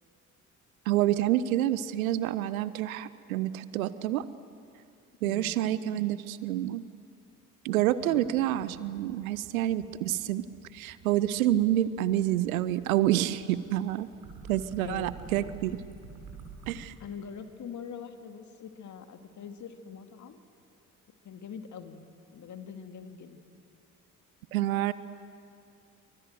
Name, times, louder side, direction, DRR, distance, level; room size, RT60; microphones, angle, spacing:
voice 1, 0.9-4.3 5.2-6.8 7.6-10.4 10.7-14.1 14.5-15.8 16.7-16.9 24.5-24.9, right 13 dB, 70° right, 17 dB, 0.9 m, -28 dB
voice 2, 5.2-5.6 8.0-8.4 14.8-15.5 17.0-20.4 21.2-22.0 22.3-23.6, left 6 dB, 40° left, 7 dB, 2.3 m, -43 dB
sound 1, 7.9-16.8, right 5 dB, 50° right, 5.8 m, -48 dB
28.0 x 24.5 x 7.9 m, 2.5 s
figure-of-eight pair, 50°, 43 cm